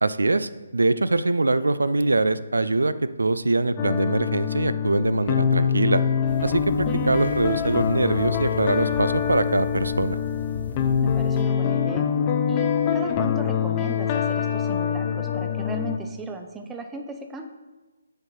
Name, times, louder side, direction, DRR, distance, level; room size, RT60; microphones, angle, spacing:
voice 1, 0.0-2.9 3.2-6.0 6.4-10.2, right 2 dB, 80° right, 14 dB, 0.4 m, -23 dB
sound 1, 3.8-16.0, left 8 dB, 30° left, 0.6 m, -24 dB
sound 2, 6.3-11.4, left 3 dB, 70° left, 1.8 m, -37 dB
voice 2, 6.8-7.2 11.0-12.1 12.5-17.5, right 3 dB, 10° right, 5 dB, 0.6 m, -36 dB
7.8 x 4.4 x 5.5 m, 1.2 s
figure-of-eight pair, 145°, 0 cm